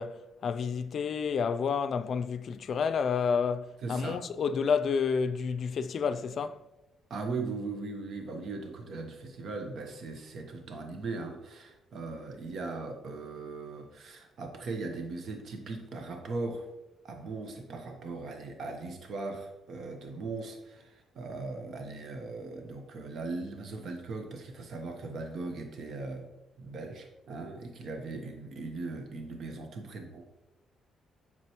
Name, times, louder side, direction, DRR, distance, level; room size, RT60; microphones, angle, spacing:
voice 1, 0.0-6.6, left 6 dB, 55° left, 0.4 m, -30 dB
voice 2, 3.8-4.2 7.1-16.7 17.0-26.2 26.6-30.2, right 3 dB, 60° right, 1.0 m, -39 dB
7.6 x 6.0 x 3.0 m
cardioid pair, 90°, 0 cm